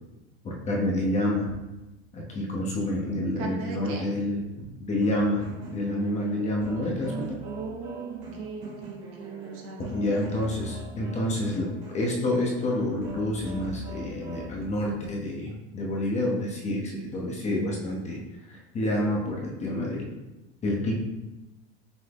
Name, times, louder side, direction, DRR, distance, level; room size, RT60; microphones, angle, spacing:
voice 1, 0.4-1.5 2.1-7.3 9.9-18.2 18.5-20.1 20.6-20.9, left 1 dB, 20° left, -2 dB, 0.6 m, -28 dB
voice 2, 3.4-4.0 6.8-10.8, right 4 dB, 65° right, 0 dB, 1.0 m, -39 dB
sound 1, 5.0-14.7, right 2 dB, 85° right, 1.2 m, -41 dB
6.0 x 2.0 x 3.4 m, 1.0 s
supercardioid pair, 145°, 31 cm